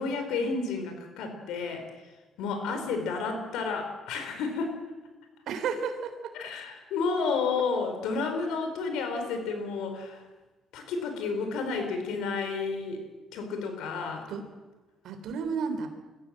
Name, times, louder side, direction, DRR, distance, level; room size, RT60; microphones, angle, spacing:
voice 1, 0.0-1.9 2.4-4.7 6.3-10.2 10.7-13.0 13.3-14.3, left 4 dB, 85° left, 6 dB, 4.6 m, -31 dB
voice 2, 2.7-3.0 5.5-6.3 14.3-14.5 15.0-15.9, right 5 dB, 70° right, 7 dB, 3.7 m, -33 dB
24.5 x 15.0 x 7.7 m, 1.2 s
cardioid pair, 105°, 0 cm